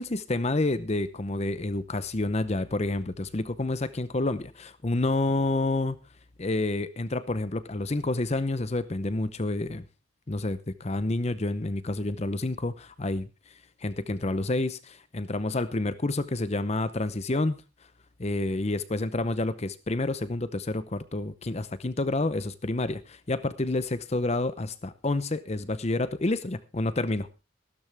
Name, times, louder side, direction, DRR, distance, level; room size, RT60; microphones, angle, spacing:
voice 1, 0.0-6.0 6.4-9.8 10.3-13.3 13.8-17.6 18.2-27.4, left 2 dB, 30° left, 0.7 m, -29 dB
15.5 x 12.5 x 3.4 m
head